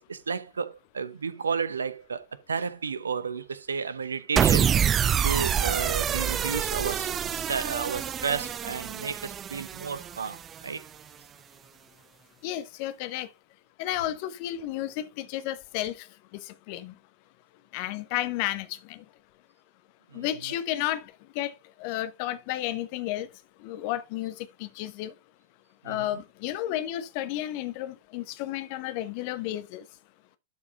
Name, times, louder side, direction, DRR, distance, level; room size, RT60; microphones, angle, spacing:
voice 1, 0.0-4.7 5.2-10.8 20.1-20.3 25.8-26.2, right 5 dB, 75° right, 0.8 m, -32 dB
sound 1, 4.4-10.7, right 8 dB, 25° right, 0.4 m, -27 dB
voice 2, 12.4-13.3 13.8-16.1 16.4-16.9 17.7-19.0 20.1-23.3 23.6-25.1 25.8-29.8, left 13 dB, 45° left, 1.2 m, -32 dB
12.0 x 5.1 x 3.7 m
figure-of-eight pair, 90°, 0 cm